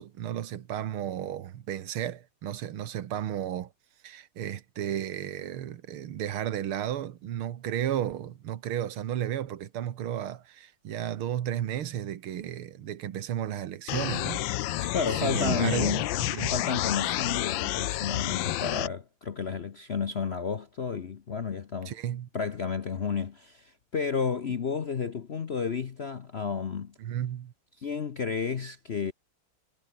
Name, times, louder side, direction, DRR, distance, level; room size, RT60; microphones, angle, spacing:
voice 1, 0.0-3.7 4.0-14.5 14.8-14.9 15.2-16.5 21.9-22.3 27.0-27.5, right 10 dB, 90° right, 2.1 m, -33 dB
sound 1, 13.9-18.9, left 15 dB, 70° left, 1.4 m, -30 dB
voice 2, 14.9-16.1 16.5-21.9 22.3-26.9 27.8-29.1, left 6 dB, 50° left, 0.7 m, -31 dB
omnidirectional pair, 2.3 m